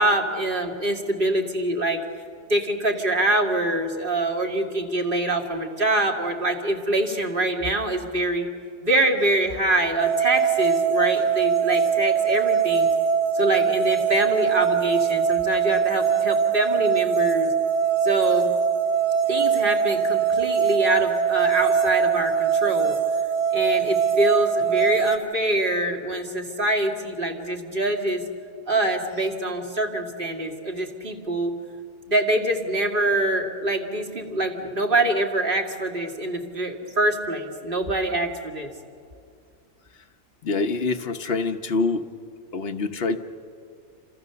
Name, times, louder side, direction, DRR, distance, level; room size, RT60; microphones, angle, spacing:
voice 1, 0.0-2.0 2.5-8.5 8.8-12.9 13.3-17.5 18.0-18.5 19.3-22.9 23.5-28.2 28.7-31.5 32.1-38.7, right 1 dB, 40° right, 2 dB, 2.2 m, -24 dB
sound 1, 10.0-25.2, right 7 dB, 75° right, 1.5 m, -22 dB
voice 2, 40.4-42.1 42.5-43.2, left 3 dB, 50° left, 8 dB, 1.1 m, -25 dB
29.0 x 26.5 x 6.9 m, 2.3 s
omnidirectional pair, 1.4 m